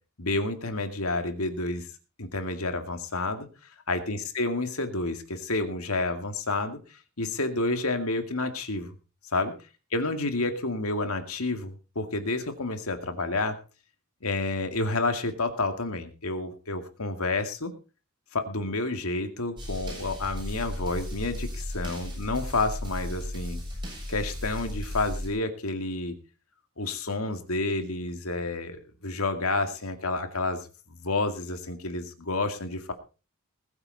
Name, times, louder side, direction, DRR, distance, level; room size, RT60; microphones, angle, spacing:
voice 1, 0.2-1.9 2.2-3.5 3.9-8.9 9.3-9.5 9.9-13.6 14.2-17.7 18.3-23.6 24.1-26.1 26.8-32.9, left 2 dB, 80° left, 7 dB, 2.3 m, -30 dB
sound 1, 19.6-25.3, left 1 dB, 20° right, 7.3 m, -35 dB
20.5 x 8.8 x 4.1 m, 0.34 s
head